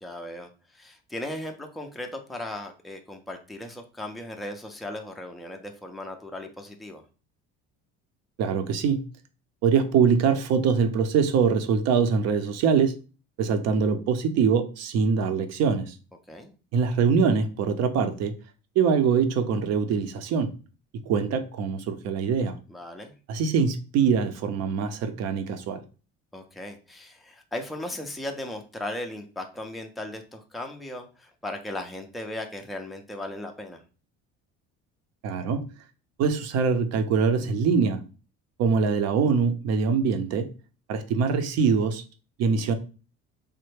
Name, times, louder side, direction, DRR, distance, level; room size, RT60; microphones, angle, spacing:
voice 1, 0.0-7.0 16.3-16.5 22.7-23.1 26.3-33.8, left 1 dB, ahead, 3 dB, 0.4 m, -37 dB
voice 2, 8.4-9.0 9.6-12.9 13.4-15.9 16.7-18.3 18.8-20.5 20.9-22.6 23.3-25.8 35.2-35.6 36.2-38.0 38.6-40.5 40.9-42.0 42.4-42.7, right 6 dB, 55° right, 8 dB, 0.6 m, -23 dB
3.2 x 2.1 x 3.1 m, 0.35 s
supercardioid pair, 105°, 31 cm